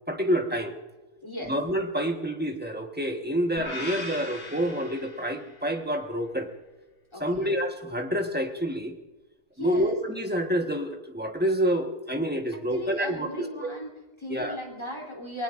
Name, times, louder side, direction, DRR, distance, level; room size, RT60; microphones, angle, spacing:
voice 1, 0.1-0.7 1.5-6.5 7.2-8.9 9.6-13.7 14.3-14.6, equal, 5° right, 4 dB, 1.2 m, -28 dB
voice 2, 1.2-1.5 7.1-7.5 9.6-10.0 12.7-15.4, left 1 dB, 15° left, 0 dB, 3.4 m, -37 dB
sound 1, 3.6-5.8, left 1 dB, 60° left, 2.9 m, -39 dB
28.0 x 20.0 x 2.6 m, 1.1 s
omnidirectional pair, 1.7 m